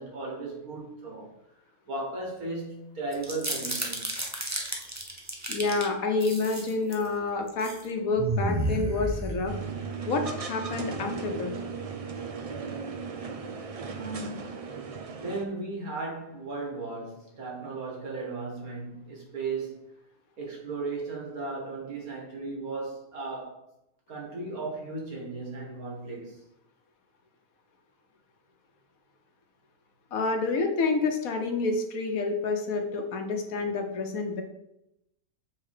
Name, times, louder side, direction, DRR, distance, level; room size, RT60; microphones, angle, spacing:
voice 1, 0.0-1.4 1.9-4.2 13.8-14.7 15.1-19.8 20.4-23.6 24.1-26.4, right 3 dB, 90° right, 2.5 m, -36 dB
sound 1, 3.1-5.8 6.2-7.1 7.5-7.8 8.2-9.8, right 1 dB, 15° right, 0.7 m, -32 dB
voice 2, 5.5-9.5 10.0-11.5 30.1-34.4, left 3 dB, 75° left, 1.4 m, -28 dB
sound 2, 9.5-15.4, right 5 dB, 70° right, 0.3 m, -36 dB
7.2 x 3.7 x 4.9 m
omnidirectional pair, 1.5 m